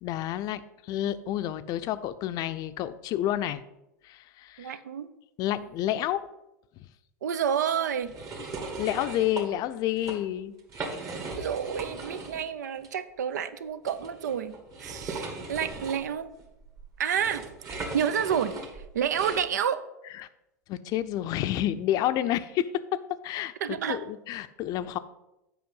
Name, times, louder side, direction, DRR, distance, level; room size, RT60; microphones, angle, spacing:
voice 1, 0.0-3.6 4.0-4.8 5.4-6.2 8.8-10.5 20.2-20.3 20.7-22.7 23.2-25.0, left 12 dB, 45° left, 12 dB, 0.5 m, -29 dB
voice 2, 4.6-5.1 7.2-8.1 11.4-16.3 17.0-17.4 17.7-19.8 23.6-24.0, right 8 dB, 80° right, 13 dB, 0.5 m, -29 dB
sound 1, 8.1-9.5 9.9-10.2 10.6-12.5 12.8-12.9 13.8-19.5, right 3 dB, 35° right, 1.6 m, -38 dB
7.8 x 5.1 x 5.4 m, 0.92 s
hypercardioid pair, 100°, 9 cm